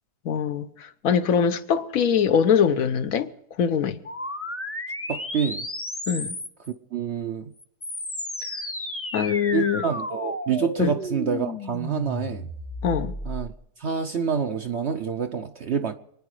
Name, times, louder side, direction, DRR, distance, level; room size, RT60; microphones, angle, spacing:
voice 1, 0.2-3.3 3.6-4.0 6.1-6.4 9.1-9.8 10.8-10.9 12.8-13.2, left 7 dB, 65° left, 1.3 m, -23 dB
sound 1, 4.0-6.7 7.6-13.5, left 1 dB, 15° left, 0.5 m, -33 dB
voice 2, 5.1-5.7 6.9-7.5 9.5-12.5 13.2-13.5 13.8-16.0, right 7 dB, 55° right, 0.8 m, -27 dB
27.0 x 9.9 x 4.8 m
omnidirectional pair, 1.7 m